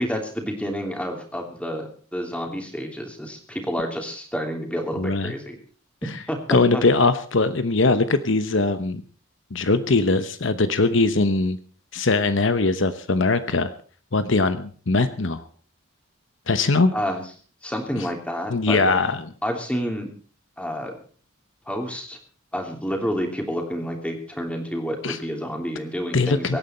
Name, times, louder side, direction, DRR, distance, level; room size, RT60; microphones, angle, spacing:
voice 1, 0.0-5.6 6.3-6.8 16.9-17.2 17.6-19.0 19.4-20.1 20.6-20.9 21.7-22.2 22.5-26.6, equal, 5° left, 2 dB, 3.1 m, -29 dB
voice 2, 5.0-5.3 6.5-9.0 9.5-11.6 11.9-13.7 14.1-15.4 16.5-16.9 18.0-18.1 18.5-19.2 25.0-25.2 26.1-26.6, left 3 dB, 65° left, 11 dB, 1.0 m, -21 dB
24.0 x 9.5 x 4.4 m, 0.41 s
head